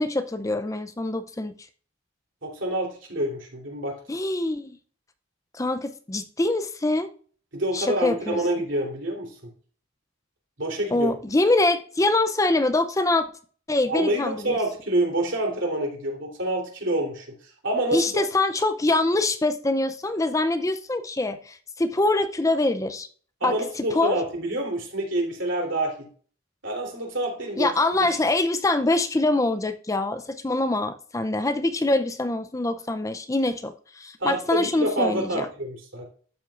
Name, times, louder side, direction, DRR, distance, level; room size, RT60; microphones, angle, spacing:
voice 1, 0.0-1.5 4.1-4.7 5.5-7.1 7.7-8.4 10.9-13.3 13.7-14.6 17.9-23.1 23.4-24.1 27.6-35.5, left 2 dB, 15° left, 10 dB, 0.5 m, -24 dB
voice 2, 2.4-4.0 7.5-9.3 10.6-11.1 13.9-17.3 17.6-18.2 23.4-26.1 26.6-27.7 28.0-28.1 34.2-36.1, right 1 dB, 65° right, 1 dB, 3.3 m, -27 dB
12.0 x 8.1 x 2.5 m, 0.43 s
head